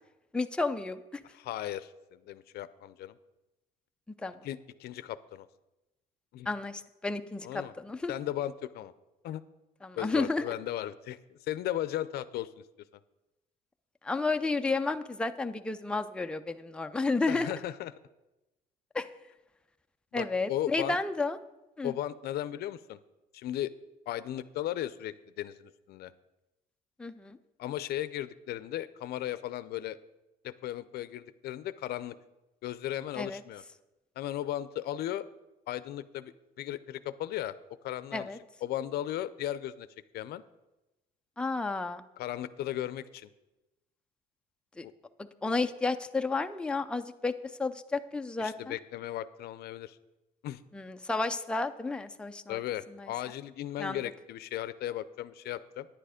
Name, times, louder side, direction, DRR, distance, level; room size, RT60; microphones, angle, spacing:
voice 1, 0.3-1.2 4.2-4.4 6.5-8.1 9.8-10.4 14.0-17.5 18.9-19.1 20.1-21.4 21.8-21.9 27.0-27.4 33.2-33.4 38.1-38.4 41.4-42.0 44.8-44.9 45.4-47.3 47.6-48.7 50.7-52.6 52.9-53.1 53.8-54.0, left 3 dB, 5° left, 7 dB, 0.5 m, -31 dB
voice 2, 1.3-3.2 4.4-5.5 6.3-6.5 7.4-7.7 8.1-8.9 9.2-9.4 10.0-12.6 17.3-17.9 20.1-21.0 21.8-23.0 23.3-23.7 24.1-26.1 27.6-30.0 30.4-32.2 32.6-33.6 34.2-35.2 35.7-36.3 36.6-37.5 37.8-38.3 38.6-39.9 40.1-40.4 42.2-43.3 44.8-44.9 48.4-50.0 50.4-50.6 52.5-55.9, left 13 dB, 70° left, 15 dB, 0.5 m, -36 dB
10.0 x 9.0 x 5.0 m, 1.0 s
cardioid pair, 110°, 17 cm